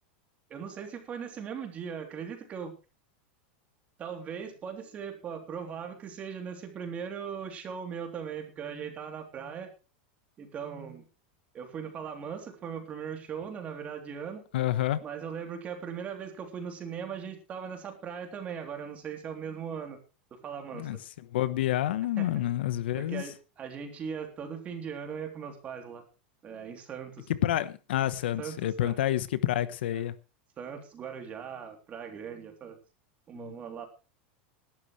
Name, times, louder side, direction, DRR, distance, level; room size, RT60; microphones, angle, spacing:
voice 1, 0.5-2.8 4.0-9.7 10.4-11.0 11.5-14.4 15.0-20.0 20.3-21.0 22.2-22.4 23.0-26.0 26.4-27.3 28.4-29.0 29.9-30.0 30.6-32.8 33.3-33.9, right 7 dB, 25° right, 3.3 m, -39 dB
voice 2, 14.5-15.0 20.7-21.0 21.3-23.2 27.3-30.1 33.3-33.5, left 13 dB, 85° left, 1.1 m, -28 dB
17.5 x 12.0 x 3.2 m
supercardioid pair, 155°, 5 cm